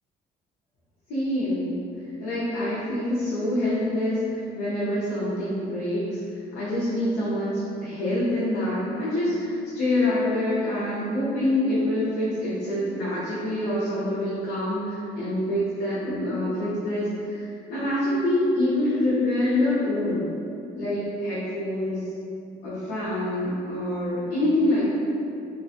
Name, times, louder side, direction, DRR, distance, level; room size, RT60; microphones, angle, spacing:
voice 1, 1.1-1.8 2.2-20.3 20.7-22.1 22.6-24.8, left 1 dB, 80° left, -11 dB, 0.7 m, -26 dB
2.4 x 2.3 x 2.6 m, 2.6 s
cardioid pair, 110°, 17 cm